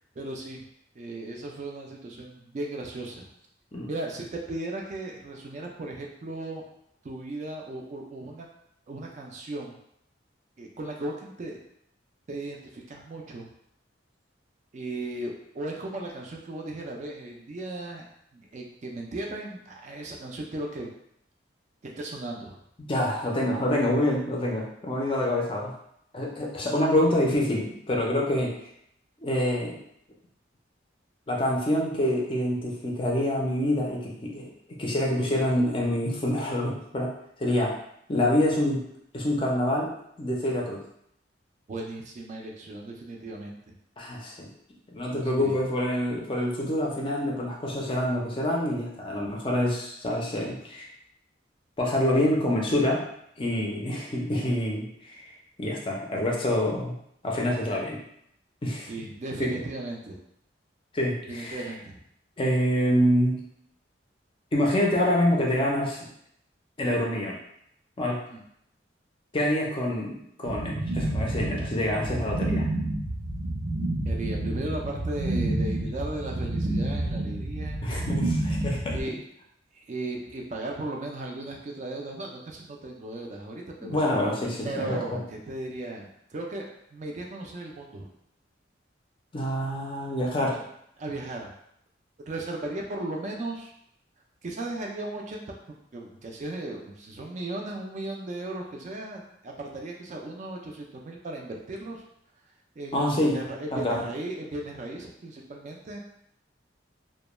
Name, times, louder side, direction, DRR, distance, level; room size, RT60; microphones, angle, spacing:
voice 1, 0.2-0.6 1.0-3.3 3.8-6.6 7.0-8.5 8.9-9.8 10.6-11.6 12.3-13.5 14.7-18.1 18.3-20.9 21.8-22.5 41.7-43.7 45.3-45.6 58.9-60.2 61.3-62.0 68.3-68.4 74.1-77.8 78.9-79.2 79.9-84.0 84.6-88.1 90.5-90.6 91.0-91.5 92.3-93.7 94.4-95.4 95.9-102.0 102.8-106.0, right 2 dB, 40° right, 0 dB, 0.3 m, -36 dB
voice 2, 22.8-25.8 26.1-28.5 29.2-29.8 31.3-37.1 37.4-37.7 38.1-38.8 39.1-39.9 40.2-40.8 44.0-44.5 44.9-50.9 51.8-53.0 53.4-55.3 55.6-57.0 57.2-58.0 58.6-58.9 59.4-59.5 60.9-61.7 62.4-63.4 64.5-66.1 66.8-67.4 68.0-68.2 69.3-72.7 77.8-79.1 83.8-85.2 89.3-90.6 102.9-103.4 103.7-104.0, left 1 dB, 30° left, -2 dB, 0.4 m, -26 dB
sound 1, 70.4-79.0, right 1 dB, 85° right, 0.6 m, -29 dB
2.2 x 2.1 x 3.0 m, 0.73 s
head